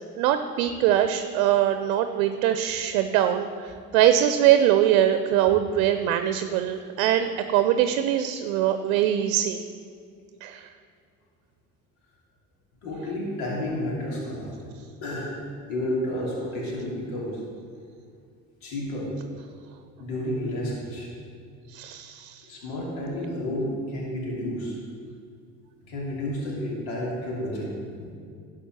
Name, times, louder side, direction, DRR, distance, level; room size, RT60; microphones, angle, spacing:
voice 1, 0.2-9.6 10.4-10.7 21.7-22.4, right 11 dB, 80° right, 8 dB, 0.7 m, -22 dB
voice 2, 12.8-14.5 15.0-15.3 15.7-17.4 18.6-19.1 20.0-21.1 22.5-24.8 25.9-28.1, left 1 dB, 80° left, -4 dB, 2.9 m, -31 dB
11.5 x 4.9 x 7.6 m, 2.3 s
hypercardioid pair, 70°, 40 cm